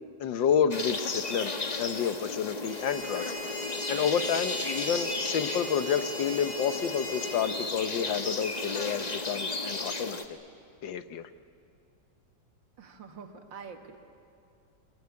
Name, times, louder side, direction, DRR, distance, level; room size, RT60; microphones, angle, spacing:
voice 1, 0.2-3.3 3.9-10.2 10.8-11.3, left 7 dB, 85° left, 11 dB, 1.7 m, -29 dB
sound 1, 0.7-10.3, left 3 dB, 25° left, 1.2 m, -35 dB
sound 2, 2.7-7.4, left 1 dB, 5° left, 5.8 m, -37 dB
voice 2, 12.8-14.0, right 6 dB, 90° right, 5 dB, 2.5 m, -45 dB
24.5 x 21.0 x 9.6 m, 2.6 s
omnidirectional pair, 2.0 m